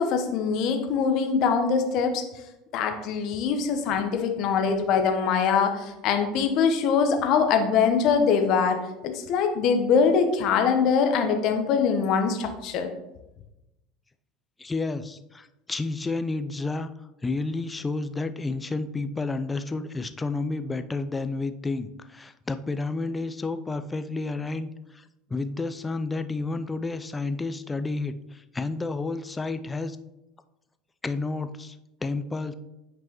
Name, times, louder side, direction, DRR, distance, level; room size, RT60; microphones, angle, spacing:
voice 1, 0.0-2.2 2.7-8.8 9.0-12.9, left 6 dB, 55° left, 6 dB, 1.0 m, -23 dB
voice 2, 14.6-16.9 17.2-25.0 25.3-30.0 31.0-32.5, left 3 dB, 15° left, 10 dB, 0.5 m, -31 dB
8.9 x 5.2 x 3.0 m, 0.93 s
figure-of-eight pair, 70°, 0 cm